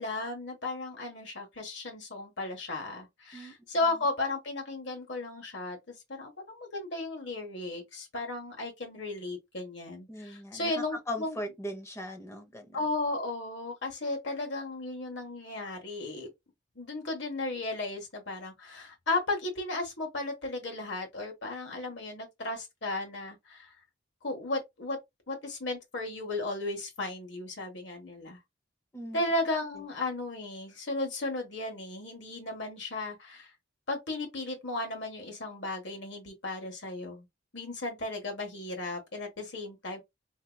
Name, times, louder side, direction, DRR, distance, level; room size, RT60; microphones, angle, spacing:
voice 1, 0.0-11.4 12.7-16.3 16.7-23.7 24.2-25.0 25.3-28.4 29.1-33.5 33.9-37.3 37.5-40.0, left 2 dB, 70° left, 1.3 m, -35 dB
voice 2, 10.1-12.8 28.9-29.2, left 1 dB, 15° left, 0.7 m, -39 dB
3.6 x 2.8 x 2.2 m
head